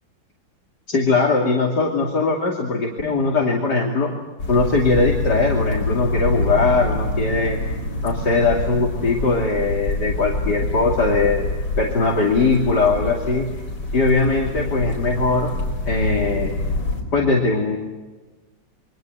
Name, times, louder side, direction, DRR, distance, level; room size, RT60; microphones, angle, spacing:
voice 1, 0.9-4.1 4.5-7.6 8.0-11.5 11.8-13.5 13.9-15.5 15.9-16.5 17.1-17.8, left 3 dB, 60° left, 0 dB, 3.3 m, -20 dB
sound 1, 4.4-17.0, left 2 dB, 75° left, 5.5 m, -26 dB
28.0 x 24.0 x 8.0 m, 1.3 s
omnidirectional pair, 2.1 m